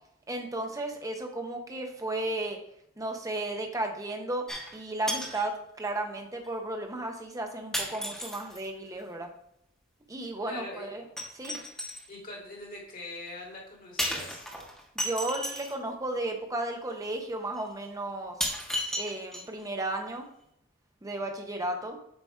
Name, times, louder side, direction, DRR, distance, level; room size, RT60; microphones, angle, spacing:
voice 1, 0.3-2.6 3.0-4.5 4.7-9.3 10.1-11.0 11.3-11.6 15.0-18.4 19.0-20.3 21.0-22.0, right 2 dB, 15° right, 3 dB, 0.8 m, -34 dB
sound 1, 4.5-4.8 5.1-5.5 6.4-6.5 7.7-8.6 11.2-12.1 14.0-15.8 16.9-17.0 17.6-17.7 18.4-19.7 20.0-20.1, equal, 5° left, 1.1 m, -34 dB
voice 2, 10.5-10.9 12.1-14.5, left 2 dB, 45° left, -4 dB, 2.1 m, -42 dB
7.8 x 2.9 x 4.7 m, 0.75 s
head